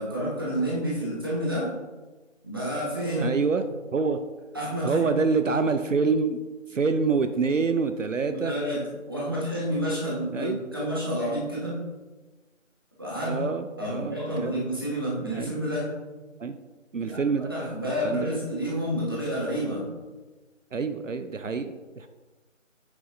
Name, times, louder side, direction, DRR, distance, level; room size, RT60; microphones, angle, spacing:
voice 1, 0.0-1.7 2.4-3.3 4.5-5.1 8.2-11.8 13.0-13.4 13.8-15.9 17.0-19.8, equal, 15° right, -6 dB, 1.1 m, -29 dB
voice 2, 3.2-3.6 3.9-4.2 4.8-6.4 6.7-8.5 10.3-10.6 13.3-14.5 15.3-15.5 16.4-16.6 16.9-17.5 18.0-18.3 20.7-22.1, right 4 dB, 70° right, 9 dB, 0.6 m, -26 dB
8.1 x 6.8 x 2.6 m, 1.2 s
figure-of-eight pair, 165°, 39 cm